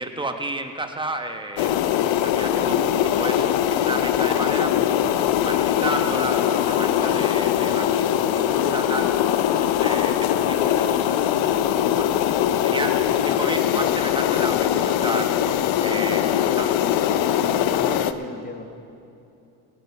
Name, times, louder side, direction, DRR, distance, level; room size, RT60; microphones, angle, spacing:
voice 1, 0.0-4.9 5.4-16.8, right 2 dB, 10° right, 6 dB, 1.2 m, -32 dB
sound 1, 1.6-18.1, left 10 dB, 70° left, 0.7 m, -21 dB
voice 2, 17.7-18.6, left 3 dB, 20° left, 4 dB, 1.5 m, -34 dB
17.5 x 8.4 x 5.6 m, 2.7 s
supercardioid pair, 75°, 48 cm